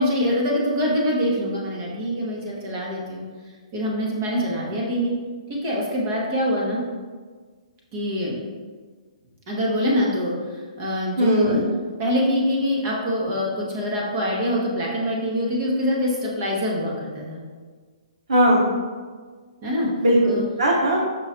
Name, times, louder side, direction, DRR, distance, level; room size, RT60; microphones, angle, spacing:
voice 1, 0.0-3.2 3.7-5.1 5.5-6.8 7.9-8.4 9.5-11.6 12.0-17.4 19.6-19.9 20.2-20.5, equal, 25° right, -3 dB, 0.9 m, -24 dB
voice 2, 11.2-11.7 18.3-18.8 20.0-21.0, equal, 80° right, -2 dB, 0.8 m, -19 dB
5.3 x 2.3 x 4.2 m, 1.5 s
hypercardioid pair, 175°, 3 cm